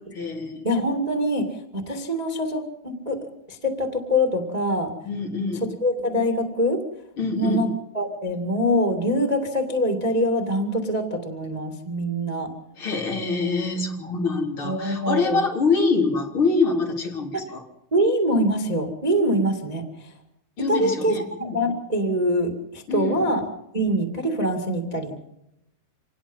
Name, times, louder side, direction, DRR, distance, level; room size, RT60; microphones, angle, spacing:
voice 1, 0.1-0.7 5.0-5.7 7.2-7.7 12.8-17.6 20.6-21.6 22.9-23.2, left 4 dB, 30° left, 0 dB, 3.9 m, -25 dB
voice 2, 0.6-3.2 3.5-4.9 5.8-6.8 7.4-12.5 14.6-15.4 17.3-17.4 17.9-20.1 20.7-21.1 21.4-23.4 23.7-25.1, equal, 75° right, 4 dB, 0.3 m, -24 dB
26.5 x 19.5 x 5.6 m, 0.83 s
omnidirectional pair, 5.4 m